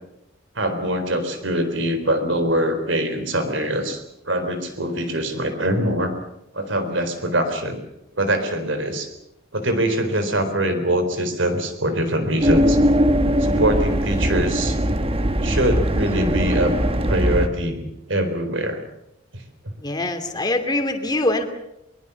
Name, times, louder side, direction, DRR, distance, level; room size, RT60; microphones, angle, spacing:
voice 1, 0.6-6.1 6.5-7.8 8.2-9.1 9.5-12.8 13.4-14.8 15.4-16.8 17.1-18.8 19.3-19.4, right 1 dB, 70° right, 9 dB, 4.1 m, -23 dB
sound 1, 12.4-17.5, equal, 30° right, 1.5 m, -20 dB
voice 2, 19.8-21.5, left 2 dB, 20° left, 6 dB, 2.7 m, -23 dB
23.0 x 22.5 x 7.1 m, 0.84 s
head